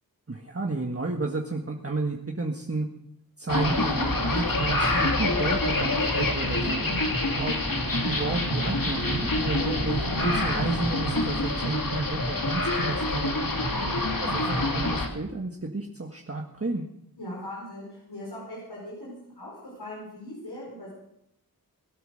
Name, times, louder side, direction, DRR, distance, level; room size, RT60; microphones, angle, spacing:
voice 1, 0.3-2.9 3.4-7.0 7.4-13.6 13.9-16.8, right 2 dB, 40° right, 1 dB, 1.6 m, -32 dB
sound 1, 3.5-15.1, left 2 dB, 65° left, 2.6 m, -26 dB
voice 2, 13.6-14.0 17.2-20.9, left 1 dB, 90° left, -5 dB, 5.0 m, -40 dB
21.0 x 9.3 x 6.5 m, 0.79 s
wide cardioid pair, 45°, 37 cm